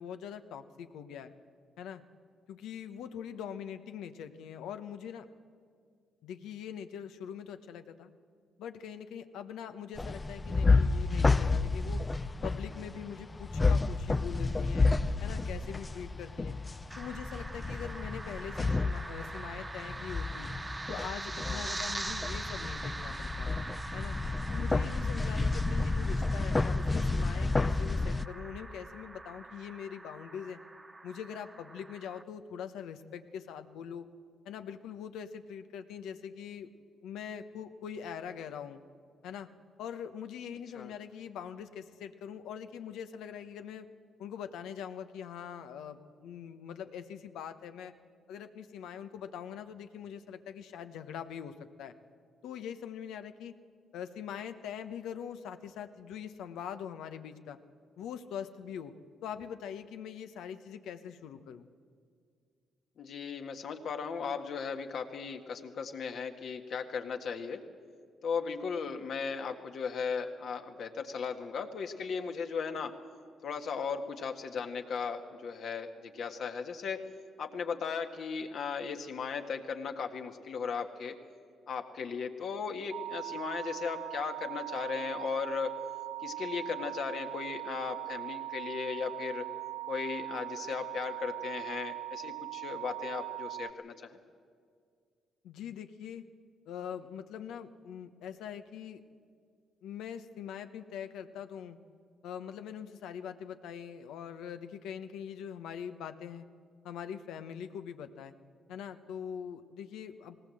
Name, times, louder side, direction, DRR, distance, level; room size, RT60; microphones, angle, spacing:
voice 1, 0.0-1.3 1.8-2.0 2.5-5.3 6.2-8.1 8.6-12.0 12.4-14.9 15.2-16.6 17.0-20.5 20.9-23.5 23.9-24.2 24.5-30.6 31.0-34.0 34.4-36.7 37.0-38.8 39.2-39.5 39.8-43.9 44.2-47.9 48.3-51.9 52.4-53.5 53.9-57.6 58.0-58.9 59.2-61.7 95.4-96.2 96.7-99.0 99.8-101.8 102.2-106.4 106.8-108.3 108.7-110.4, left 8 dB, 85° left, 9 dB, 1.0 m, -43 dB
sound 1, 10.0-28.3, left 3 dB, 20° left, 0.5 m, -30 dB
sound 2, 16.9-32.2, right 2 dB, 20° right, 0.7 m, -43 dB
voice 2, 63.0-67.6 68.2-72.9 73.4-77.0 77.4-81.1 81.7-85.7 86.2-89.4 89.9-94.2, left 5 dB, 65° left, 5 dB, 1.7 m, -36 dB
sound 3, 82.9-93.7, right 17 dB, 75° right, 0.6 m, -40 dB
18.5 x 18.5 x 7.8 m, 2.1 s
cardioid pair, 90°, 0 cm